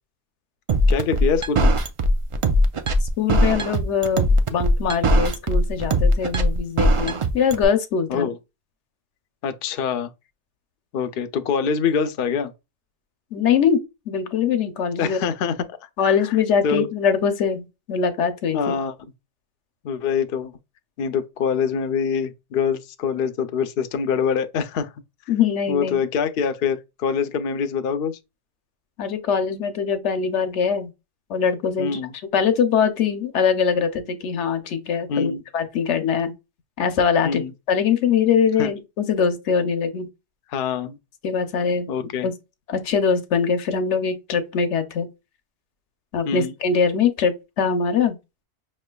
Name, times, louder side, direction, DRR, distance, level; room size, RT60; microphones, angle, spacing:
sound 1, 0.7-7.6, equal, 60° right, 0.3 m, -19 dB
voice 1, 0.9-1.7 8.1-8.3 9.4-10.1 10.9-12.5 15.0-15.8 16.0-16.1 16.6-16.9 18.5-18.9 19.8-20.5 21.0-24.9 25.7-28.1 31.8-32.1 35.1-35.4 37.2-37.5 38.6-38.7 40.5-41.0 41.9-42.3 46.3-46.5, left 6 dB, 65° left, 0.7 m, -24 dB
voice 2, 3.2-8.3 13.3-15.2 16.0-18.7 25.3-26.0 29.0-30.9 31.3-32.0 32.3-36.3 36.8-40.1 41.2-41.9 42.2-42.3 42.7-45.1 46.1-48.2, left 6 dB, 80° left, 1.0 m, -22 dB
5.6 x 3.2 x 2.2 m
omnidirectional pair, 1.2 m